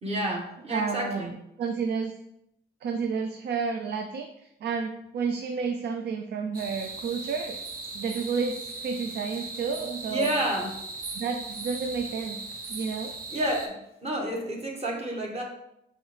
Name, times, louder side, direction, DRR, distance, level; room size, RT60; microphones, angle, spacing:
voice 1, 0.0-1.3 10.1-10.7 13.3-13.7 14.0-15.4, right 1 dB, 35° right, -1 dB, 1.4 m, -29 dB
voice 2, 0.7-1.3 1.6-2.2 2.8-7.6 7.9-10.3 11.1-12.4 12.7-13.1, right 5 dB, 70° right, 5 dB, 0.4 m, -31 dB
sound 1, 6.5-13.7, right 3 dB, 50° right, 0.9 m, -38 dB
5.3 x 3.2 x 3.2 m, 0.79 s
cardioid pair, 75°, 19 cm